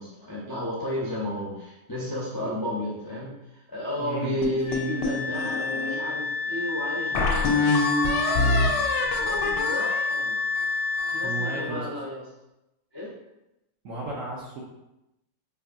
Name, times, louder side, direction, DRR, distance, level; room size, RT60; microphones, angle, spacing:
voice 1, 0.0-7.8 8.3-8.5 8.9-10.4 11.1-12.2 12.9-13.1, left 1 dB, 35° left, -7 dB, 0.3 m, -33 dB
voice 2, 4.0-4.3 11.2-11.9 13.8-14.6, right 3 dB, 65° right, -3 dB, 0.8 m, -34 dB
sound 1, 4.4-6.0 6.5-6.6 7.1-11.3, left 3 dB, 85° left, 1.2 m, -26 dB
Wind instrument woodwind instrument, 4.6-11.7, left 4 dB, 85° right, 1.6 m, -29 dB
4.4 x 2.6 x 2.5 m, 0.92 s
omnidirectional pair, 1.8 m